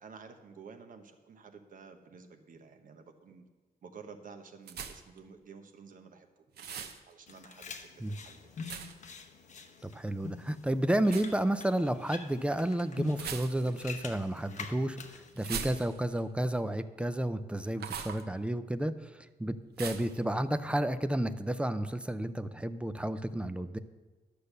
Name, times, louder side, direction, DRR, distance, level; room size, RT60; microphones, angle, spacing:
voice 1, 0.0-3.4 3.8-8.5, right 5 dB, 55° right, 5 dB, 1.1 m, -52 dB
sound 1, 4.7-5.2 6.5-7.0 8.7-9.1 11.0-11.3 13.1-13.8 15.4-16.2 17.8-18.2 19.8-20.2, right 7 dB, 85° right, 0.8 m, -40 dB
sound 2, 7.3-15.3, left 5 dB, 50° left, 0.9 m, -46 dB
voice 2, 9.8-23.8, right 1 dB, 5° right, 11 dB, 0.4 m, -31 dB
11.5 x 6.8 x 6.6 m, 1.3 s
wide cardioid pair, 155°, 16 cm